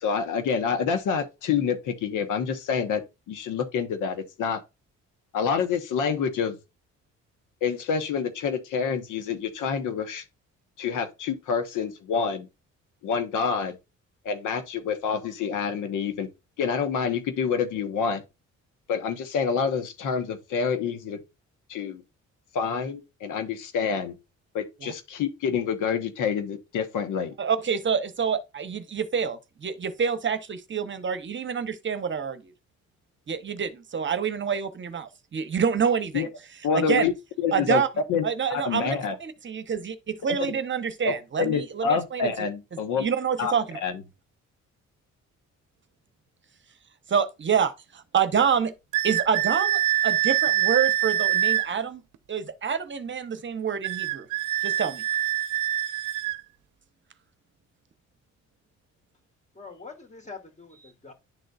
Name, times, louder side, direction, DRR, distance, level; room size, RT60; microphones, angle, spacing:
voice 1, 0.0-4.6 5.3-6.6 7.6-10.2 10.8-12.5 13.0-13.8 14.2-16.3 16.6-18.2 18.9-21.2 21.7-22.0 22.5-24.1 24.5-27.3 36.1-36.3 36.6-37.1 37.4-37.8 38.1-38.2 38.5-39.1 41.0-43.0 43.4-43.5 43.8-44.0, left 6 dB, 85° left, 1.1 m, -27 dB
voice 2, 27.4-32.5 33.3-36.3 36.7-37.1 37.5-37.9 38.2-38.9 39.2-42.3 43.0-43.8 47.1-48.7 49.0-52.0 52.3-54.3 54.6-55.0, right 7 dB, 40° right, 0.9 m, -27 dB
sound 1, 48.9-51.7 53.8-56.4, right 12 dB, 85° right, 0.6 m, -25 dB
voice 3, 59.5-61.1, left 4 dB, 25° left, 2.1 m, -44 dB
11.0 x 3.9 x 2.3 m
cardioid pair, 90°, 30 cm